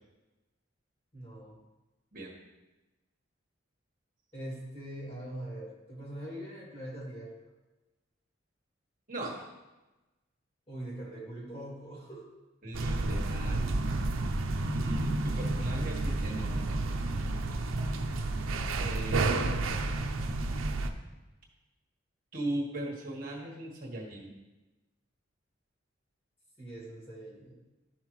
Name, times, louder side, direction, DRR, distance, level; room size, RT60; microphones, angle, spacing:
voice 1, 1.1-1.6 4.3-7.5 10.7-12.3 26.6-27.6, right 1 dB, 30° left, -5 dB, 2.4 m, -42 dB
voice 2, 9.1-9.4 12.6-13.9 14.7-17.2 18.8-19.8 22.3-24.3, right 1 dB, 45° right, -2 dB, 1.4 m, -39 dB
sound 1, 12.7-20.9, right 2 dB, 90° right, 0.6 m, -30 dB
12.0 x 5.6 x 3.1 m, 1.1 s
head